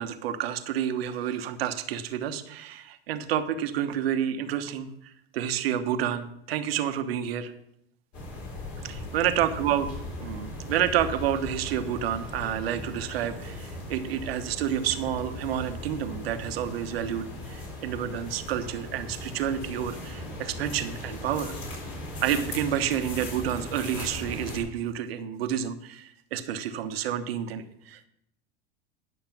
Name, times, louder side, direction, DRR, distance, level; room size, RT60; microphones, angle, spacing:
voice 1, 0.0-7.5 8.8-9.9 10.1-21.5 22.2-28.0, right 10 dB, 85° right, 8 dB, 1.1 m, -29 dB
sound 1, 8.1-24.6, left 1 dB, 50° left, 4.4 m, -38 dB
11.0 x 6.6 x 5.9 m, 0.77 s
supercardioid pair, 115°, 30 cm